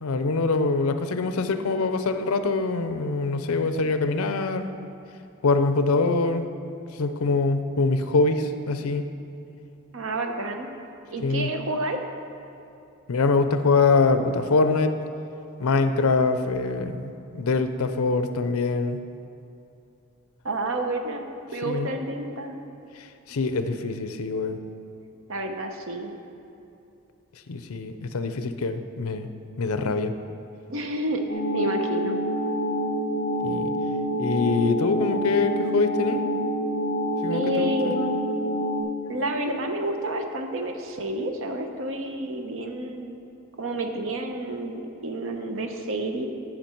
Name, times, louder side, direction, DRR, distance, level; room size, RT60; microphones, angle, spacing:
voice 1, 0.0-4.7 5.4-6.4 7.0-9.0 11.2-11.5 13.1-14.9 15.6-19.0 21.6-21.9 23.3-24.6 27.5-29.3 29.6-30.1 33.4-33.8 34.2-36.2 37.2-37.9, left 3 dB, 80° left, 9 dB, 0.6 m, -24 dB
voice 2, 9.9-10.7 11.1-12.0 20.4-21.2 21.5-22.6 23.3-23.4 25.3-26.1 30.7-32.2 37.3-38.2 39.1-43.2 43.6-46.3, right 1 dB, 65° right, 5 dB, 0.9 m, -29 dB
sound 1, 31.3-38.8, equal, 50° left, 1.8 m, -27 dB
14.0 x 5.8 x 4.5 m, 2.8 s
head